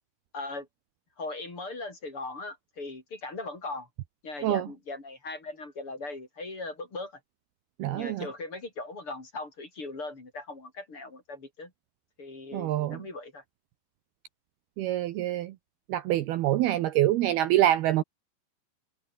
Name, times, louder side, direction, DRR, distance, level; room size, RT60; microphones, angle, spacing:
voice 1, 0.3-0.7 1.2-3.9 4.2-7.1 7.9-11.7 12.2-13.4, left 2 dB, 25° left, 5.5 m, -39 dB
voice 2, 7.8-8.3 12.5-13.0 14.8-15.5 15.9-18.0, right 13 dB, 90° right, 2.2 m, -25 dB
omnidirectional pair, 5.9 m